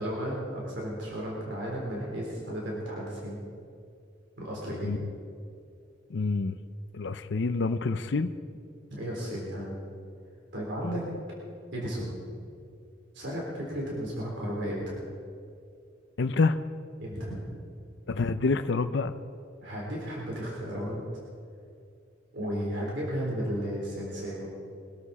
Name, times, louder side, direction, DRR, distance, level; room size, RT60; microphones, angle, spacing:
voice 1, 0.0-3.4 4.4-5.1 8.9-9.8 10.5-11.0 11.7-12.2 13.1-15.0 17.0-17.4 19.6-21.0 22.3-24.5, equal, 65° right, -4 dB, 3.8 m, -34 dB
voice 2, 6.1-6.5 6.9-8.3 10.8-10.9 16.2-16.6 18.1-19.1, left 3 dB, 65° left, 10 dB, 0.6 m, -27 dB
23.0 x 13.0 x 4.3 m, 2.5 s
head